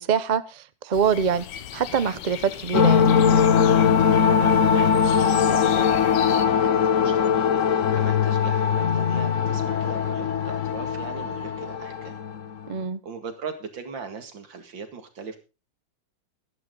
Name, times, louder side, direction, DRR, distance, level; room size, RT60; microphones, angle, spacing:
voice 1, 0.0-1.5 1.7-3.1 12.7-13.0, right 7 dB, 50° right, 0.5 m, -24 dB
sound 1, 0.9-6.5, left 10 dB, 75° left, 1.5 m, -37 dB
sound 2, 2.7-12.7, left 7 dB, 55° left, 1.0 m, -21 dB
voice 2, 4.0-7.3 7.9-12.2 13.0-15.4, right 5 dB, 80° right, 2.8 m, -39 dB
13.5 x 12.0 x 3.8 m
omnidirectional pair, 2.0 m